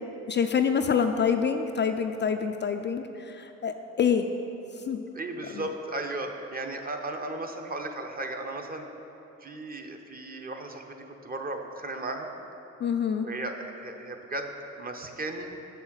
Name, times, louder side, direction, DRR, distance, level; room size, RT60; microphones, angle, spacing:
voice 1, 0.3-4.3 4.9-5.0 5.5-5.7 12.8-13.3, left 7 dB, 40° left, 6 dB, 0.4 m, -26 dB
voice 2, 5.1-8.9 9.4-12.3 13.2-14.5 14.8-15.5, right 2 dB, 30° right, 3 dB, 0.8 m, -35 dB
6.8 x 5.6 x 6.3 m, 3.0 s
cardioid pair, 90°, 30 cm